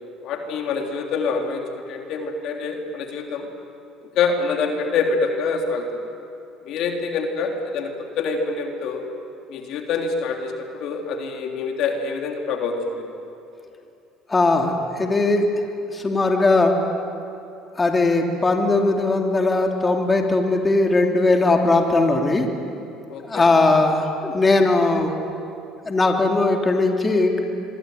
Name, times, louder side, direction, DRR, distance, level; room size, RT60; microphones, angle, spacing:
voice 1, 0.2-3.4 4.2-5.8 6.7-7.9 8.2-9.0 9.5-13.0 23.1-23.5, left 4 dB, 65° left, 3 dB, 3.5 m, -25 dB
voice 2, 14.3-15.5 15.9-16.8 17.8-22.5 23.3-25.1 25.8-27.4, left 2 dB, 25° left, 3 dB, 3.2 m, -19 dB
25.0 x 23.5 x 9.4 m, 2.7 s
hypercardioid pair, 70°, 0 cm